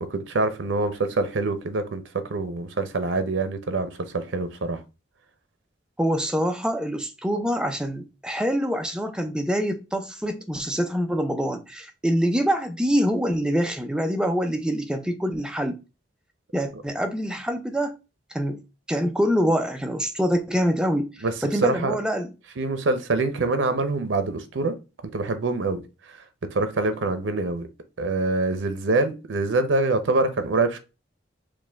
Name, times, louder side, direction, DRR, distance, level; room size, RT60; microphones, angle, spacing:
voice 1, 0.0-4.8 21.2-22.0 22.6-24.8 25.0-25.8 26.1-27.7 28.0-30.8, right 3 dB, 90° right, 0.6 m, -25 dB
voice 2, 6.0-15.8 16.5-18.0 18.3-18.6 18.9-22.3, equal, 5° right, 0.4 m, -25 dB
4.9 x 2.2 x 3.3 m
head